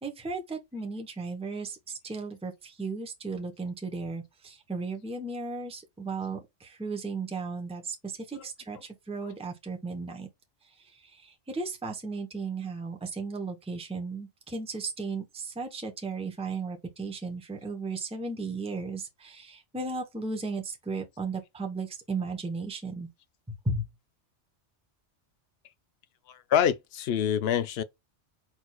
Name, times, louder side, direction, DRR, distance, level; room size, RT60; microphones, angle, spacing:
voice 1, 0.0-1.8 2.0-10.3 10.9-23.1 23.6-23.8, right 3 dB, 5° right, 0.8 m, -35 dB
voice 2, 26.3-27.8, left 9 dB, 70° left, 0.8 m, -27 dB
4.4 x 4.2 x 2.3 m
omnidirectional pair, 1.2 m